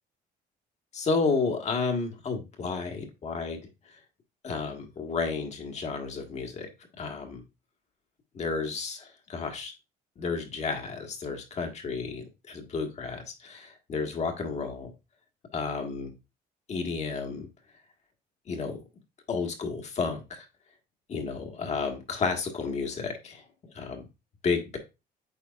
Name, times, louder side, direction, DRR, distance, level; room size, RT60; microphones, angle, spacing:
voice 1, 0.9-3.6 4.4-6.7 7.0-7.4 8.3-9.7 10.2-14.9 15.5-16.1 16.7-17.5 18.5-18.7 19.3-20.5 21.1-23.4 23.7-24.0 24.4-24.8, left 4 dB, 40° left, 4 dB, 1.6 m, -31 dB
8.6 x 4.5 x 2.4 m, 0.26 s
cardioid pair, 110°, 17 cm